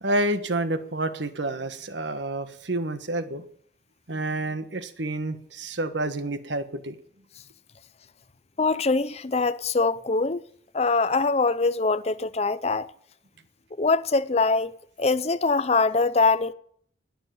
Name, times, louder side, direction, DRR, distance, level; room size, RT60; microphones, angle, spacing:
voice 1, 0.0-3.4 4.1-7.0, right 1 dB, 70° right, 1.5 m, -29 dB
voice 2, 8.6-10.4 10.7-12.9 13.8-16.5, left 3 dB, 35° left, 0.6 m, -23 dB
20.0 x 7.4 x 9.3 m
head